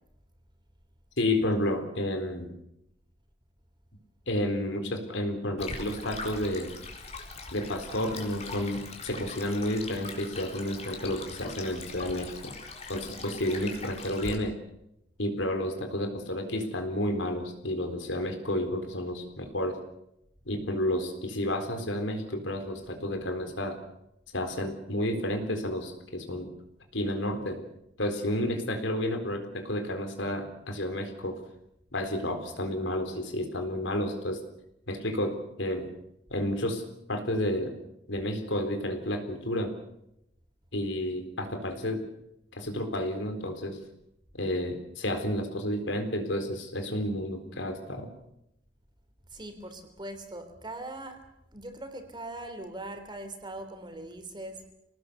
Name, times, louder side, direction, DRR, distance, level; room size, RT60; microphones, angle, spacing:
voice 1, 1.2-2.5 4.3-6.7 7.5-12.5 12.9-14.6 15.2-19.8 20.5-23.8 24.3-26.5 26.9-27.6 28.0-31.4 31.9-34.4 34.9-35.9 36.3-36.8 37.1-37.7 38.1-39.7 40.7-42.1 42.5-43.8 44.3-48.1, left 1 dB, 80° left, 6 dB, 4.2 m, -31 dB
Stream, 5.6-14.4, left 3 dB, 35° left, 4.0 m, -41 dB
voice 2, 49.3-51.2 51.5-54.6, right 1 dB, 25° right, 7 dB, 3.4 m, -41 dB
26.5 x 19.0 x 6.9 m, 0.83 s
head